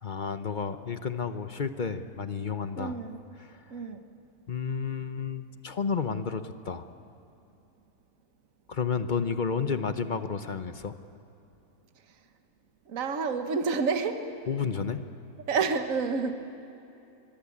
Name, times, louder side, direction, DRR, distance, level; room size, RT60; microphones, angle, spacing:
voice 1, 0.0-3.0 3.4-3.6 4.5-6.9 8.7-10.9 14.5-15.0, left 5 dB, 40° left, 10 dB, 0.8 m, -31 dB
voice 2, 2.8-3.2 3.7-4.0 12.9-14.2 15.5-16.4, right 5 dB, 60° right, 7 dB, 1.6 m, -29 dB
24.0 x 23.0 x 8.6 m, 2.8 s
omnidirectional pair, 1.6 m